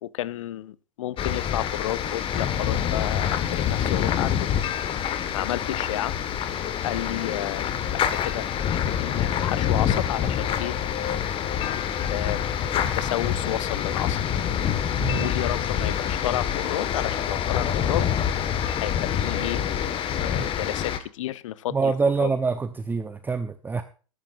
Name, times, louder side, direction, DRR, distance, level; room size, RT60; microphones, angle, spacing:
voice 1, 0.0-4.5 5.3-6.1 6.8-7.7 8.1-10.8 12.0-12.4 12.8-14.2 15.0-18.1 18.8-19.6 20.1-21.9 22.2-22.3, left 13 dB, 65° left, 0.8 m, -31 dB
sound 1, 1.2-21.0, left 9 dB, 30° left, 1.5 m, -26 dB
voice 2, 21.7-23.8, right 4 dB, 10° right, 0.8 m, -26 dB
17.0 x 13.5 x 2.5 m
hypercardioid pair, 100°, 18 cm